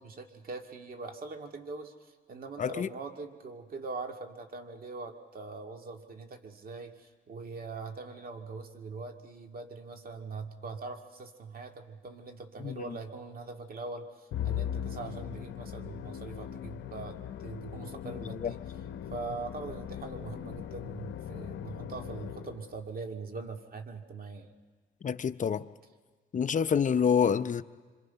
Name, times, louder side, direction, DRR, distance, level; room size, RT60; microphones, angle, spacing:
voice 1, 0.0-18.6 19.1-24.5, right 3 dB, 50° right, 2.1 m, -42 dB
voice 2, 2.6-2.9 12.6-12.8 18.4-18.5 25.0-25.7 26.3-27.6, left 7 dB, 40° left, 0.7 m, -27 dB
Musical instrument, 14.3-22.8, left 10 dB, 70° left, 0.8 m, -39 dB
27.0 x 25.0 x 5.8 m
cardioid pair, 90°, 20 cm